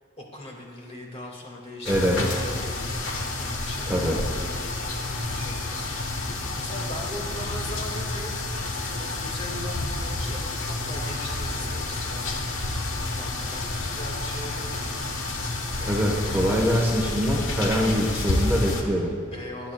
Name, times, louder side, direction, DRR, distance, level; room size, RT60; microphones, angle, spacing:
voice 1, 0.2-2.9 3.4-4.1 5.3-8.4 8.9-12.8 13.1-15.6 16.2-16.6 19.3-19.7, left 1 dB, 30° left, -1 dB, 2.1 m, -40 dB
sound 1, 1.8-18.8, left 2 dB, 90° left, 1.4 m, -30 dB
voice 2, 1.9-2.3 3.9-4.2 15.8-19.1, equal, 10° right, -2 dB, 1.1 m, -24 dB
25.0 x 8.9 x 2.3 m, 2.1 s
head